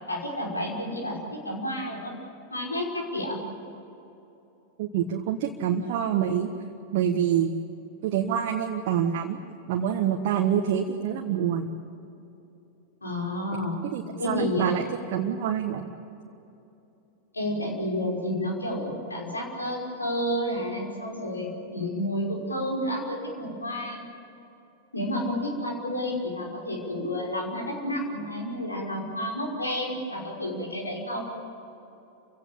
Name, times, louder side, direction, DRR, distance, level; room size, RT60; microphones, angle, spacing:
voice 1, 0.1-2.1 2.5-3.4 13.0-13.8 14.2-14.8 17.3-24.1 24.9-31.2, left 1 dB, 80° left, 0 dB, 5.7 m, -30 dB
voice 2, 4.8-6.5 6.9-7.6 8.0-9.4 9.7-11.7 13.9-15.8, right 9 dB, 50° right, 3 dB, 1.5 m, -26 dB
29.0 x 17.0 x 8.6 m, 2.8 s
figure-of-eight pair, 90°, 0 cm